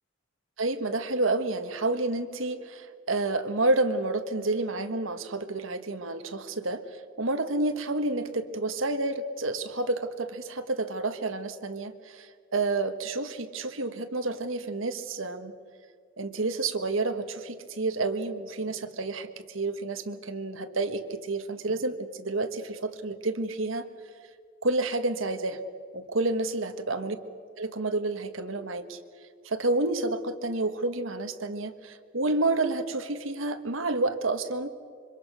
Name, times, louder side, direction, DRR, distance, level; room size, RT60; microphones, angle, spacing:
voice 1, 0.6-15.5 16.2-23.9 24.6-25.6 25.9-27.2 27.6-29.0 29.4-34.7, right 2 dB, 75° right, 9 dB, 1.5 m, -29 dB
26.0 x 24.5 x 6.3 m, 2.1 s
head